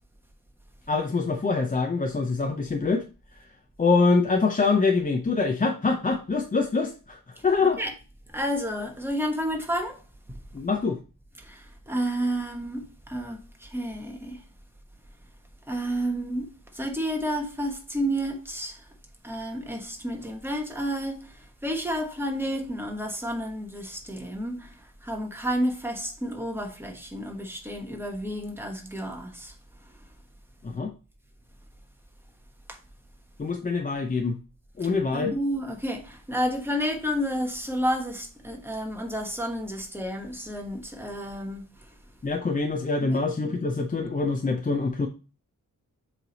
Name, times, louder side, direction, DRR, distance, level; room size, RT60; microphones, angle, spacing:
voice 1, 0.9-3.0 3.3-3.4 3.8-7.8 10.5-11.0 30.6-30.9 33.4-34.4 34.8-35.3 42.2-45.1, left 4 dB, 25° left, 0.5 m, -25 dB
voice 2, 8.3-10.0 10.3-10.4 11.4-14.4 15.7-16.5 16.7-18.8 19.2-21.3 21.6-24.8 25.0-29.5 32.7-32.8 35.1-41.6 43.0-43.2, equal, 5° right, 1.1 m, -30 dB
7.4 x 3.3 x 3.9 m
wide cardioid pair, 145°, 34 cm